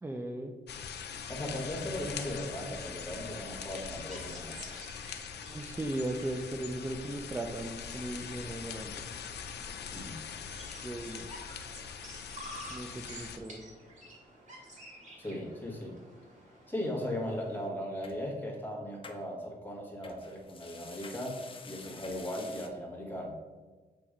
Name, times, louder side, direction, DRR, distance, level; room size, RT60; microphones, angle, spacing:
voice 1, 0.0-0.6 5.5-9.0 10.8-11.3 12.7-13.8, right 1 dB, 15° right, 4 dB, 0.4 m, -37 dB
sound 1, 0.7-13.4, left 7 dB, 85° left, 0.5 m, -42 dB
voice 2, 1.3-4.6 9.9-10.2 15.2-16.0 16.7-23.4, left 1 dB, 10° left, -2 dB, 1.4 m, -38 dB
sound 2, 2.1-17.7, equal, 45° right, 1.9 m, -52 dB
sound 3, 18.0-18.2 19.0-19.2 20.0-22.7, left 4 dB, 30° left, 0.6 m, -48 dB
7.0 x 2.9 x 4.9 m, 1.3 s
wide cardioid pair, 125°, 17 cm